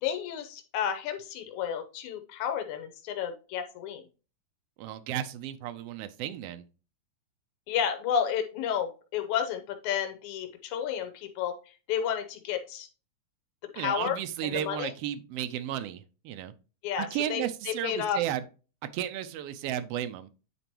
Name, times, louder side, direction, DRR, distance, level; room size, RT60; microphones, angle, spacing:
voice 1, 0.0-4.0 7.7-11.6 11.9-12.9 13.7-14.2 14.4-14.9 16.8-18.2, left 8 dB, 85° left, 7 dB, 2.2 m, -31 dB
voice 2, 4.8-6.6 13.8-16.5 17.0-18.4 18.9-20.3, right 11 dB, 85° right, 10 dB, 1.3 m, -33 dB
9.2 x 4.5 x 2.9 m, 0.34 s
omnidirectional pair, 3.4 m